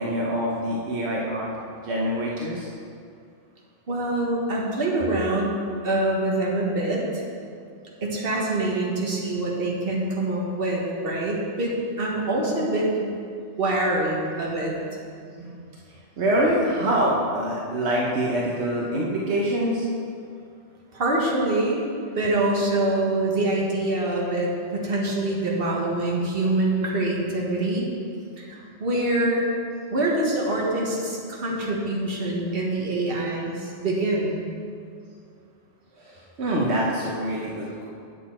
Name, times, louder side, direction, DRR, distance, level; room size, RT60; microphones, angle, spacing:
voice 1, 0.0-1.5 1.8-2.7 15.3-15.6 16.2-19.9 36.0-37.9, right 1 dB, 80° right, -4 dB, 1.3 m, -25 dB
voice 2, 3.9-5.6 5.8-7.2 8.0-13.1 13.6-14.7 20.9-21.8 22.1-27.9 28.4-29.4 29.9-34.4, right 2 dB, 60° right, -3 dB, 1.6 m, -25 dB
8.4 x 8.1 x 4.3 m, 2.3 s
omnidirectional pair, 1.1 m